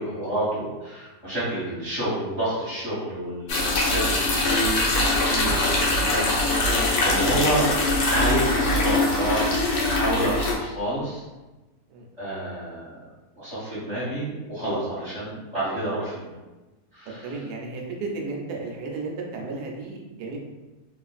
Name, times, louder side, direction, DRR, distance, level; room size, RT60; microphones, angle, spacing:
voice 1, 0.0-7.6 8.0-9.4 9.8-11.2 12.2-13.0 13.3-16.3 16.9-17.3, right 1 dB, 25° right, -13 dB, 1.1 m, -29 dB
sound 1, 3.5-10.5, left 2 dB, 75° left, 1.1 m, -22 dB
voice 2, 17.1-20.4, right 3 dB, 80° right, 0 dB, 1.1 m, -33 dB
3.0 x 2.4 x 2.3 m, 1.1 s
omnidirectional pair, 1.7 m